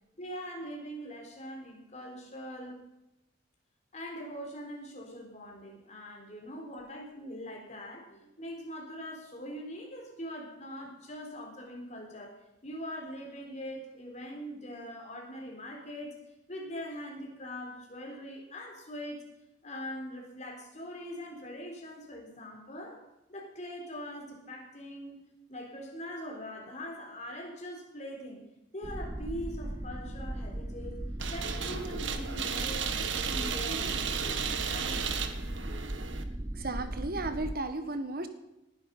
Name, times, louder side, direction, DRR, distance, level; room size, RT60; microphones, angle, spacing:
voice 1, 0.2-2.8 3.9-12.3 12.6-16.2 16.5-19.2 19.6-23.0 23.3-28.5 28.7-31.0 31.3-35.2, equal, 35° left, 1 dB, 4.0 m, -42 dB
sound 1, 28.8-37.6, right 1 dB, 15° right, 0.6 m, -38 dB
sound 2, 31.2-36.2, right 6 dB, 75° right, 1.4 m, -34 dB
voice 2, 36.6-38.3, right 2 dB, 50° right, 9 dB, 1.6 m, -34 dB
19.0 x 11.0 x 5.5 m, 0.92 s
head